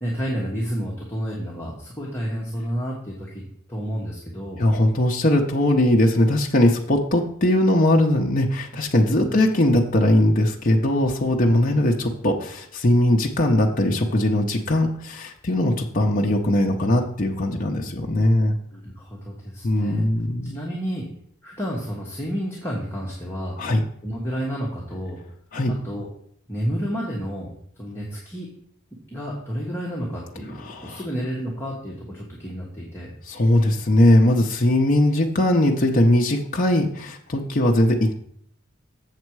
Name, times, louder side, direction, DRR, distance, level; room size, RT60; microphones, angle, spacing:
voice 1, 0.0-4.6 9.1-9.4 12.0-12.1 18.7-20.0 20.4-21.1 21.4-23.6 24.0-25.2 25.8-26.1 26.5-27.5 27.8-28.5 29.1-33.1, equal, 10° left, -5 dB, 1.4 m, -30 dB
voice 2, 4.6-18.6 19.6-20.6 23.6-23.8 25.5-25.7 30.6-31.0 33.3-38.1, left 1 dB, 40° left, 0 dB, 0.7 m, -20 dB
7.5 x 6.5 x 4.7 m, 0.65 s
head